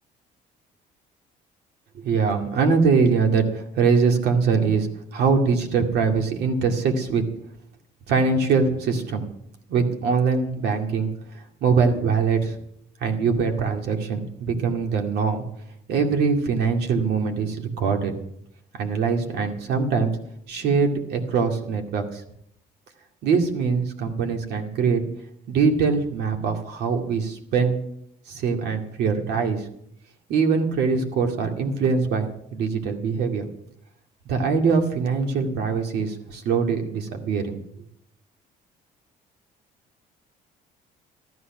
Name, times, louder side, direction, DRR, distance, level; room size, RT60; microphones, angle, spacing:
voice 1, 1.9-4.9 5.1-7.2 8.1-9.3 9.7-11.1 11.6-12.6 13.0-15.4 15.9-18.1 18.7-20.1 20.5-22.2 23.2-25.0 25.5-27.8 28.3-29.7 30.3-33.5 34.3-37.6, right 5 dB, 75° right, 4 dB, 2.2 m, -22 dB
14.0 x 11.5 x 6.1 m, 0.75 s
cardioid pair, 110°, 17 cm